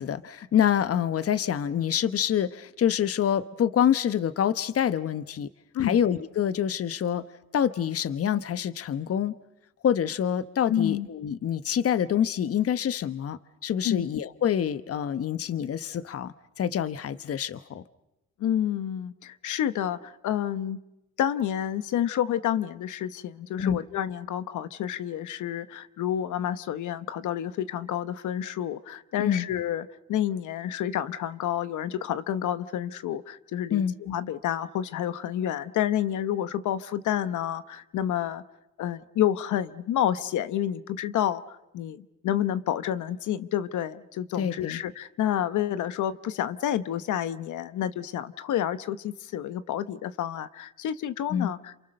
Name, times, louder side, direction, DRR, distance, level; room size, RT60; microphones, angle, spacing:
voice 1, 0.0-5.5 5.8-7.2 7.5-9.3 9.8-17.8 23.6-23.8 29.2-29.5 33.7-33.9 44.4-44.8 51.3-51.5, left 9 dB, 50° left, 14 dB, 1.0 m, -26 dB
voice 2, 10.7-11.1 13.8-14.1 18.4-20.8 21.2-38.4 38.8-51.9, left 11 dB, 75° left, 13 dB, 1.0 m, -29 dB
28.0 x 28.0 x 6.6 m, 0.91 s
cardioid pair, 90°, 30 cm